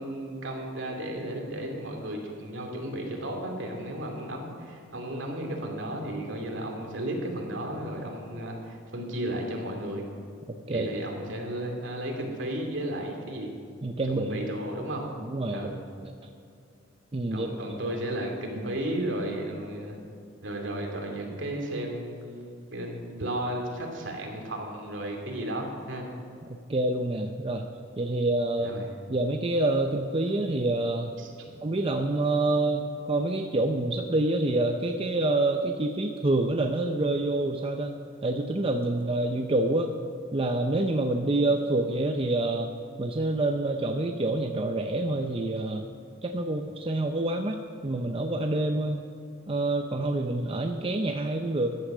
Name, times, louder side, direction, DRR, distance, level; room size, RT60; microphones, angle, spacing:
voice 1, 0.0-10.0 10.7-13.5 14.1-15.0 15.5-15.7 17.3-20.0 20.4-26.1 28.6-28.8 31.2-31.5, right 1 dB, 70° right, 1 dB, 2.7 m, -34 dB
voice 2, 10.5-10.9 13.8-14.5 15.2-15.7 16.0-16.1 17.1-17.5 17.8-18.0 18.6-18.8 26.7-27.7 28.0-28.7 29.1-31.1 31.6-37.9 38.2-39.9 40.3-42.7 43.0-45.9 46.2-49.0 49.5-51.8, right 2 dB, 30° right, 4 dB, 0.6 m, -27 dB
14.5 x 10.0 x 6.2 m, 2.4 s
head